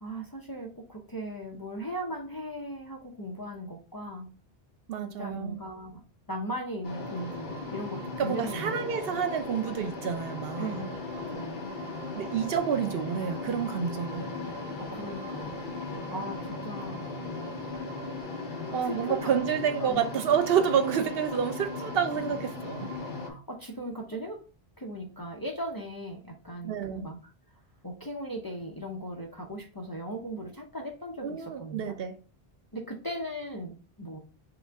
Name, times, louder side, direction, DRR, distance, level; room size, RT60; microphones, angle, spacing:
voice 1, 0.0-4.3 5.0-6.0 6.3-9.2 10.6-11.7 12.1-12.2 14.8-15.6 16.1-17.0 18.8-19.3 19.8-20.0 22.1-22.4 23.3-24.4 24.8-27.3 27.8-32.0 32.7-34.2, equal, 25° left, 0.5 m, -38 dB
voice 2, 4.9-5.6 8.2-10.8 12.2-14.3 18.7-22.9 26.6-27.1 31.2-32.2, right 8 dB, 70° right, 0.8 m, -29 dB
sound 1, 6.8-23.3, left 2 dB, 50° left, 1.0 m, -37 dB
4.9 x 2.5 x 3.4 m
omnidirectional pair, 1.1 m